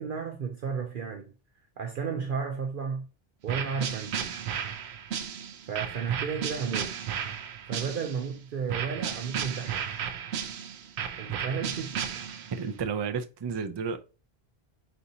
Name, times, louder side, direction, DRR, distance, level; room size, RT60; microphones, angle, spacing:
voice 1, 0.0-1.3 1.8-3.1 3.4-4.3 5.7-7.0 7.7-10.0 11.2-12.0, right 6 dB, 60° right, 0.8 m, -33 dB
sound 1, 3.5-8.3 8.7-12.7, right 8 dB, 85° right, 0.9 m, -34 dB
voice 2, 12.5-14.0, right 6 dB, 40° right, 0.3 m, -31 dB
4.3 x 4.0 x 2.7 m
omnidirectional pair, 1.1 m